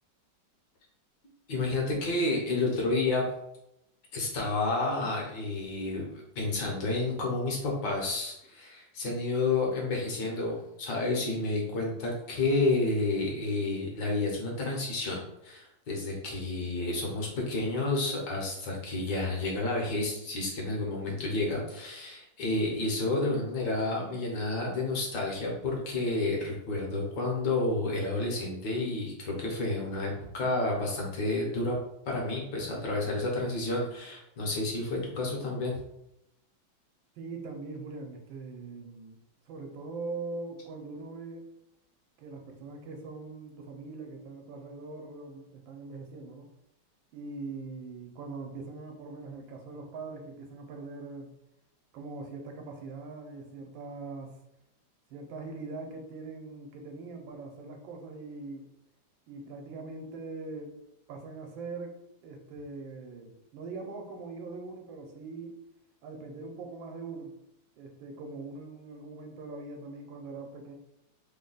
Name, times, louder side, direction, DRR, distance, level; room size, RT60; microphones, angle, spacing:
voice 1, 1.5-3.2 4.1-31.7 32.1-35.8, left 2 dB, 65° left, -2 dB, 1.5 m, -30 dB
voice 2, 37.2-39.2 39.5-41.5 42.2-46.5 47.1-51.3 51.9-54.4 55.1-58.7 59.3-60.7 61.1-62.0 62.2-65.6 66.0-67.3 67.8-70.7, right 3 dB, 85° right, 3 dB, 1.4 m, -42 dB
3.6 x 2.2 x 3.9 m, 0.83 s
omnidirectional pair, 2.1 m